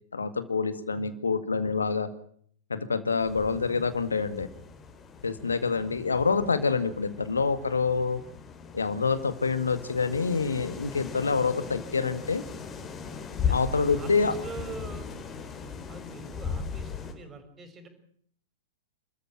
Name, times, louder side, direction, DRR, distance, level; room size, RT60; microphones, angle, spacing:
voice 1, 0.1-2.1 2.7-4.5 5.2-8.2 8.7-12.4 13.5-14.3, left 4 dB, 75° left, 12 dB, 1.9 m, -27 dB
sound 1, 3.2-17.1, left 6 dB, 20° left, 4.2 m, -38 dB
voice 2, 13.9-15.2 15.9-17.9, right 3 dB, 20° right, 8 dB, 6.1 m, -44 dB
30.0 x 14.0 x 8.8 m, 0.63 s
figure-of-eight pair, 100°, 0 cm